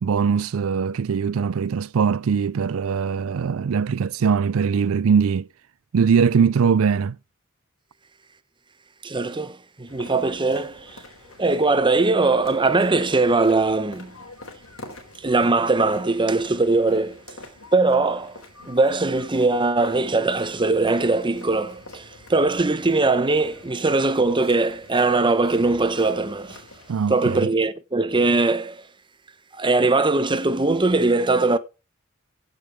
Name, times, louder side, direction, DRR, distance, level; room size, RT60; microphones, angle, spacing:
voice 1, 0.0-5.5 5.9-7.2 26.9-27.5, right 6 dB, 80° right, 0.4 m, -21 dB
voice 2, 9.0-11.0 11.4-14.1 15.2-17.4 17.7-18.4 18.7-26.6 27.1-28.8 29.6-31.6, right 3 dB, 25° right, 0.9 m, -21 dB
sound 1, 9.9-26.9, left 2 dB, 70° left, 4.5 m, -45 dB
15.5 x 5.3 x 4.6 m
head